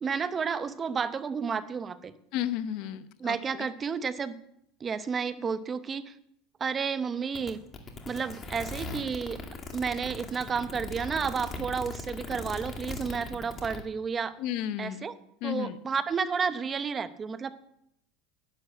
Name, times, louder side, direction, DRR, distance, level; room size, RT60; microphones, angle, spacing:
voice 1, 0.0-2.1 3.2-4.3 4.8-6.1 6.6-7.6 8.1-9.4 9.7-14.4 14.8-15.1 15.4-17.5, right 6 dB, 25° right, 13 dB, 0.8 m, -31 dB
voice 2, 2.3-3.7 14.4-15.1 15.4-15.8, left 11 dB, 60° left, 13 dB, 0.9 m, -33 dB
sound 1, 7.4-13.8, left 3 dB, 25° left, 2.3 m, -39 dB
11.0 x 10.5 x 7.5 m, 0.78 s
supercardioid pair, 110°, 0 cm